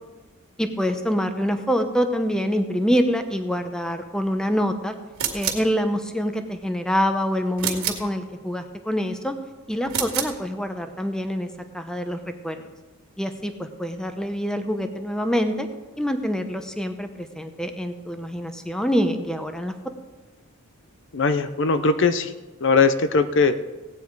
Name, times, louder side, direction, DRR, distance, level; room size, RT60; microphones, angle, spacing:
voice 1, 0.6-4.9 5.3-9.3 9.7-11.5 11.7-12.7 13.2-15.7 16.0-19.7, equal, 5° left, 7 dB, 0.8 m, -25 dB
Brownie Hawkeye Camera Shutter, 5.2-5.7 7.6-8.1 9.9-10.4, right 8 dB, 75° right, 2.0 m, -27 dB
voice 2, 21.1-22.3 22.6-23.5, left 4 dB, 55° left, 11 dB, 0.6 m, -20 dB
17.0 x 9.2 x 4.7 m, 1.2 s
head